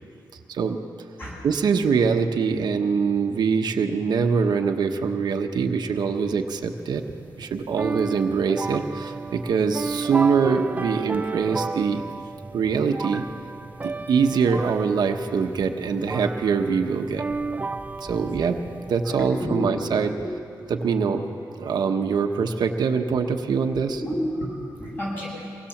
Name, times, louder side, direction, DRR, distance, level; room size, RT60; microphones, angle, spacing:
voice 1, 0.5-0.8 1.4-7.0 7.4-12.0 12.5-13.2 13.8-17.2 18.0-18.6 18.9-20.1 20.7-21.2 21.6-24.0, right 5 dB, 80° right, 4 dB, 1.2 m, -23 dB
sound 1, 6.7-19.2, right 3 dB, 20° right, 0.5 m, -33 dB
voice 2, 17.8-18.4 19.0-19.8 20.1-20.2 20.6-20.7 21.6-21.8 23.7-25.7, equal, 30° left, -4 dB, 7.9 m, -32 dB
24.5 x 19.0 x 7.3 m, 2.5 s
wide cardioid pair, 155°, 7 cm